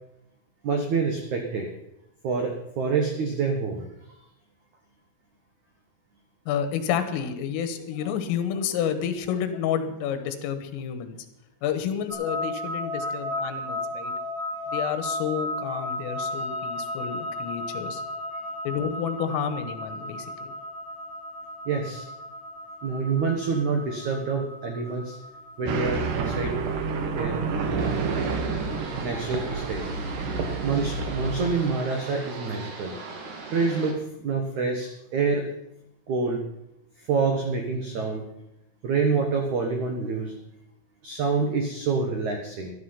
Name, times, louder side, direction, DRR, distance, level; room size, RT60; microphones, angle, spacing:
voice 1, 0.6-1.7 2.2-3.9 21.6-22.1 22.8-25.2 25.6-26.6 27.1-27.9 29.0-29.9 30.6-32.9 33.5-35.5 36.1-36.4 37.0-38.2 38.8-40.3 41.0-42.7, right 4 dB, 85° right, 3 dB, 1.6 m, -27 dB
voice 2, 6.5-11.2 11.6-14.1 14.7-18.0 18.7-20.5, left 8 dB, 85° left, 10 dB, 3.9 m, -30 dB
sound 1, 12.1-31.2, left 1 dB, 25° right, 4.1 m, -35 dB
sound 2, 25.7-31.5, right 4 dB, 70° right, 2.0 m, -29 dB
sound 3, 27.8-33.9, right 3 dB, 50° right, 2.7 m, -39 dB
13.5 x 12.5 x 5.7 m, 0.84 s
omnidirectional pair, 5.7 m